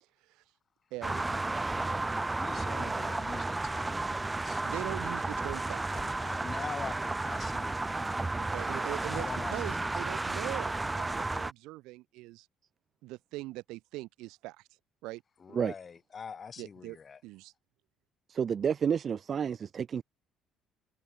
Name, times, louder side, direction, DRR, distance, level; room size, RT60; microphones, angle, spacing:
voice 1, 0.9-1.3 2.7-3.0 4.6-5.9 8.4-9.3 9.5-12.5 13.0-14.6 15.0-15.2 16.6-17.0 17.2-17.5, right 20 dB, 90° right, 7.0 m, -41 dB
sound 1, 1.0-11.5, right 2 dB, 10° right, 1.1 m, -33 dB
voice 2, 2.4-4.6 5.9-8.5 9.1-9.9 15.4-17.2, left 6 dB, 30° left, 6.0 m, -44 dB
voice 3, 18.3-20.0, right 7 dB, 35° right, 0.3 m, -30 dB
cardioid pair, 145°, 0 cm